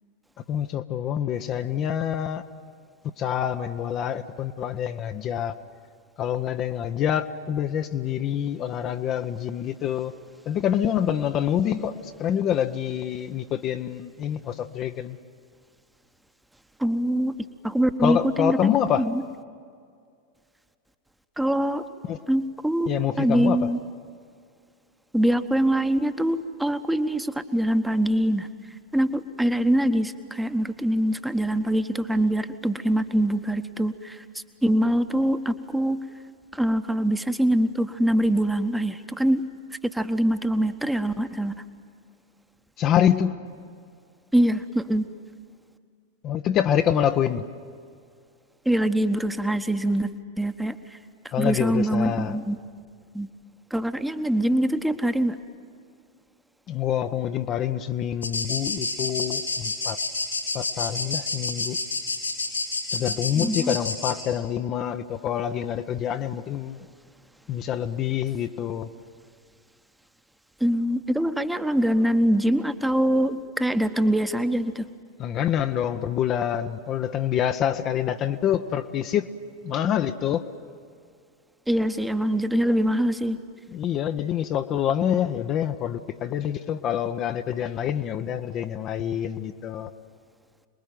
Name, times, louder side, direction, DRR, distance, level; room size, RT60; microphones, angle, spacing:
voice 1, 0.5-2.4 3.2-5.5 6.2-10.1 10.5-15.2 18.0-19.1 22.1-22.2 22.9-23.7 42.8-43.4 46.2-47.5 51.3-52.4 56.7-60.0 60.5-61.8 62.9-66.8 67.5-68.9 75.2-79.3 79.6-80.4 83.7-89.9, left 9 dB, 35° left, 7 dB, 0.8 m, -26 dB
voice 2, 16.8-17.4 17.6-19.1 21.4-21.9 22.3-23.8 25.1-28.5 28.9-34.2 34.6-36.0 36.5-39.4 39.8-41.5 44.3-45.1 48.6-51.0 51.4-52.6 53.1-53.3 53.7-55.4 63.3-63.7 70.6-74.9 81.7-83.4, right 1 dB, 5° right, 9 dB, 1.1 m, -24 dB
sound 1, 58.2-64.1, left 3 dB, 80° left, 5.5 m, -29 dB
27.5 x 21.0 x 9.1 m, 2.2 s
figure-of-eight pair, 90°, 0 cm